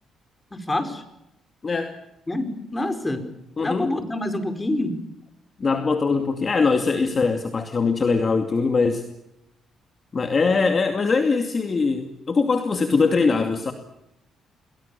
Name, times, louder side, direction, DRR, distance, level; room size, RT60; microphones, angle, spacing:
voice 1, 0.5-1.0 2.3-3.3 3.6-5.0, left 1 dB, 20° left, 8 dB, 4.8 m, -27 dB
voice 2, 3.6-3.9 5.6-9.0 10.1-13.7, left 4 dB, 35° left, 6 dB, 2.4 m, -22 dB
29.5 x 22.0 x 7.0 m, 0.88 s
cardioid pair, 90°, 0 cm